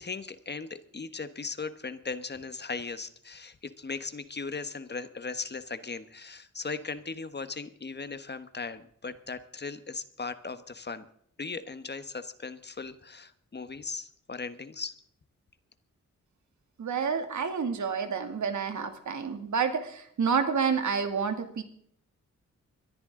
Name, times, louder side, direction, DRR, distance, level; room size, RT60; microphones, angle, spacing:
voice 1, 0.0-11.0 11.4-15.0, left 4 dB, 35° left, 12 dB, 1.2 m, -38 dB
voice 2, 16.8-21.6, right 6 dB, 70° right, 7 dB, 2.4 m, -29 dB
22.0 x 14.5 x 3.8 m, 0.66 s
wide cardioid pair, 105°, 30 cm